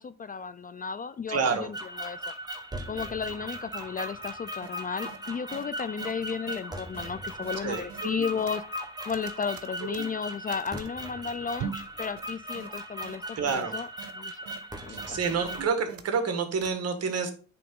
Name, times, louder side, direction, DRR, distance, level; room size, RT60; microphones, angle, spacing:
voice 1, 0.0-2.3 2.9-8.6 9.1-13.9 14.1-14.4 14.8-15.2, left 6 dB, 30° left, 13 dB, 0.4 m, -34 dB
voice 2, 1.3-1.7 7.6-7.8 13.4-13.7 14.9-17.3, right 5 dB, 55° right, 6 dB, 1.5 m, -28 dB
sound 1, 1.7-15.7, right 1 dB, 15° right, 1.1 m, -39 dB
sound 2, 4.6-4.7 5.0-5.2 5.5-5.6 6.0-6.1 6.5-6.6 6.9-7.1 7.4-7.5 7.9-8.8 9.1-10.9 11.6-11.9 12.2-12.3 12.6-12.7 13.0-13.2 13.5-13.6 14.0-14.1 14.5-14.6 14.9-15.1 15.4-16.3 16.6-16.7, right 8 dB, 85° right, 0.8 m, -40 dB
8.5 x 3.4 x 3.7 m, 0.40 s
cardioid pair, 90°, 30 cm